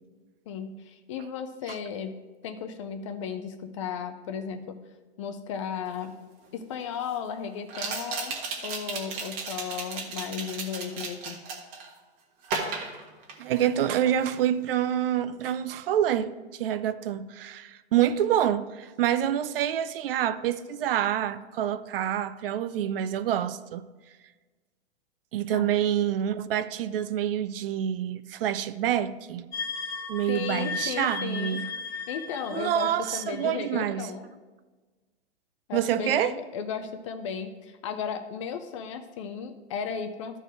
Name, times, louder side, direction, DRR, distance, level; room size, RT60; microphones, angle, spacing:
voice 1, 0.5-2.1 2.4-4.7 5.2-6.2 6.5-8.4 8.6-11.4 25.5-25.7 30.3-31.6 31.9-34.3 35.7-40.4, left 7 dB, 30° left, 0.4 m, -35 dB
sound 1, 6.0-6.1 7.7-11.9 12.4-13.8 14.1-14.4, right 4 dB, 35° right, 1.5 m, -34 dB
voice 2, 13.4-23.8 25.3-29.5 30.1-31.7 32.5-34.1 35.7-36.3, right 10 dB, 55° right, 0.5 m, -27 dB
sound 2, 29.5-33.9, left 5 dB, 10° left, 1.3 m, -36 dB
13.0 x 4.6 x 4.6 m
hypercardioid pair, 150°, 35 cm